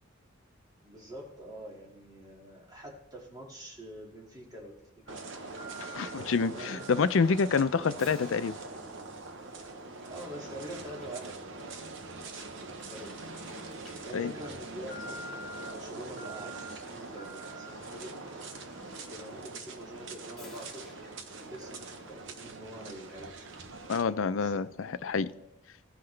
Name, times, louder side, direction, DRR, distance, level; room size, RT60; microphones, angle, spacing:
voice 1, 0.8-5.3 5.9-6.9 10.1-13.4 14.0-15.2 15.6-18.2 19.1-20.9 21.3-23.5 24.4-24.7 25.0-25.5, right 1 dB, 20° right, -2 dB, 2.0 m, -46 dB
Alarm, 5.1-23.7 24.1-24.2 24.8-24.9, equal, ahead, 2.2 m, -51 dB
sound 1, 5.1-24.0, right 3 dB, 65° right, 0.9 m, -43 dB
voice 2, 5.8-8.5 14.1-14.3 23.9-25.3, left 5 dB, 70° left, 14 dB, 0.5 m, -27 dB
16.5 x 5.8 x 3.3 m, 0.84 s
head